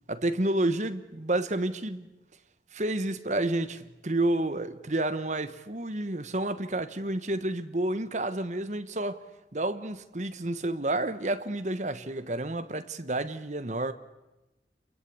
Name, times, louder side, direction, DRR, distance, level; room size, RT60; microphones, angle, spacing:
voice 1, 0.1-2.1 2.7-9.2 9.5-13.9, right 1 dB, 40° right, 1.2 m, -30 dB
27.5 x 22.0 x 8.6 m
head